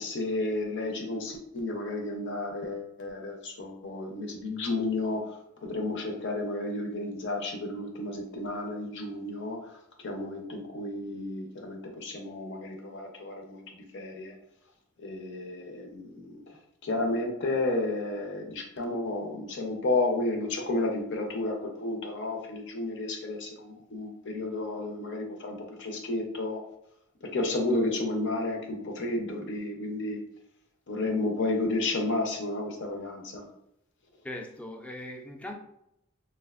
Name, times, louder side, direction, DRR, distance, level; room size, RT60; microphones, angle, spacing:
voice 1, 0.0-14.3 15.0-16.4 16.8-26.6 27.2-30.2 30.9-33.5, left 2 dB, 60° left, 2 dB, 0.6 m, -32 dB
voice 2, 34.2-35.5, left 1 dB, 5° left, 2 dB, 0.3 m, -39 dB
3.3 x 2.5 x 2.4 m, 0.79 s
head